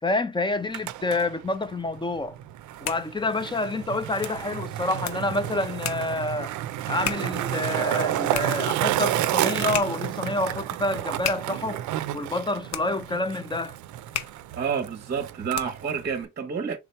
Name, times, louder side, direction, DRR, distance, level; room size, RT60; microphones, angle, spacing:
voice 1, 0.0-2.4 2.8-6.5 6.9-11.8 12.1-13.8, left 2 dB, 15° left, 0.5 m, -28 dB
Skateboard, 0.5-16.2, right 13 dB, 75° right, 0.5 m, -31 dB
sound 1, 2.5-16.0, left 9 dB, 65° left, 0.7 m, -38 dB
voice 2, 14.6-16.8, right 6 dB, 35° right, 0.8 m, -29 dB
3.7 x 2.8 x 4.4 m
cardioid pair, 90°, 30 cm